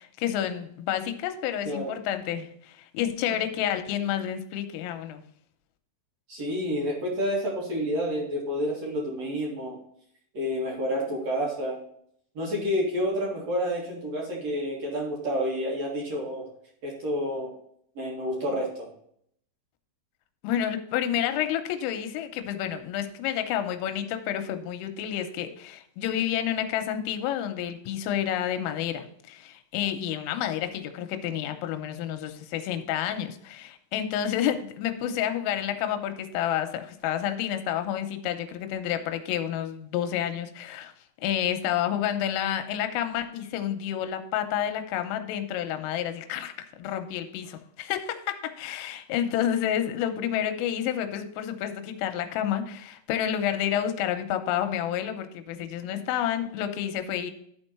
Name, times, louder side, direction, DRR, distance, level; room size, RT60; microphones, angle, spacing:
voice 1, 0.0-5.2 20.4-40.9 41.2-57.3, left 10 dB, 90° left, 7 dB, 3.3 m, -29 dB
voice 2, 1.6-2.0 3.3-3.4 6.3-9.8 10.3-11.8 12.3-16.5 16.8-17.5 18.0-18.9, equal, 50° right, -3 dB, 2.0 m, -29 dB
12.0 x 4.5 x 4.3 m, 0.68 s
omnidirectional pair, 5.9 m